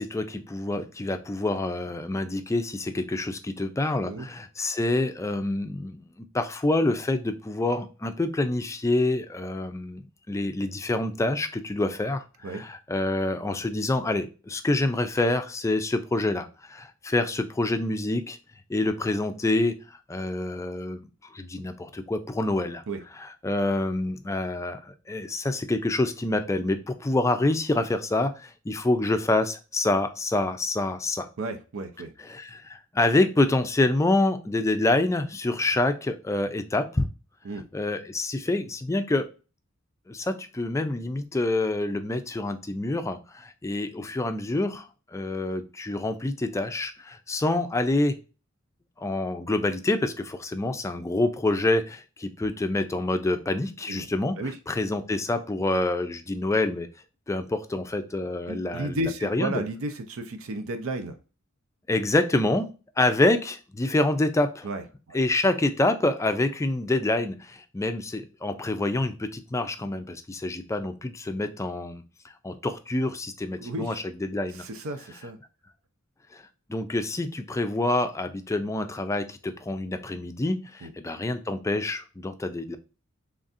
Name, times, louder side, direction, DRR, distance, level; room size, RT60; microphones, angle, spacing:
voice 1, 0.0-18.4 18.7-19.8 20.1-21.0 21.3-22.8 23.2-31.3 32.2-37.1 37.7-39.3 40.1-48.2 49.0-54.4 54.7-56.9 57.3-59.6 61.9-62.7 63.0-64.7 65.1-74.6 76.3-76.4 76.7-82.8, left 2 dB, 15° left, 8 dB, 0.4 m, -27 dB
voice 2, 31.4-32.1 37.4-37.6 53.9-54.1 54.4-54.6 58.5-61.2 64.6-65.2 73.6-74.0 74.5-75.4 80.8-80.9, right 1 dB, 70° right, 7 dB, 0.5 m, -33 dB
4.0 x 3.4 x 2.5 m, 0.33 s
head